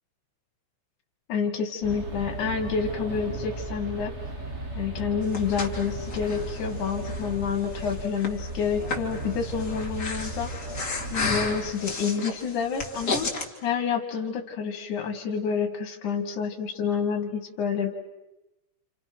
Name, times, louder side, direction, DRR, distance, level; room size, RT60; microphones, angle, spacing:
voice 1, 1.3-4.1 4.7-10.5 10.8-13.3 13.6-17.9, left 6 dB, 80° left, 3 dB, 3.1 m, -28 dB
sound 1, 1.8-11.7, right 1 dB, 25° right, 2.4 m, -36 dB
Breathing, 5.0-13.5, left 3 dB, 30° left, 3.0 m, -34 dB
29.0 x 29.0 x 6.0 m, 1.0 s
omnidirectional pair, 3.4 m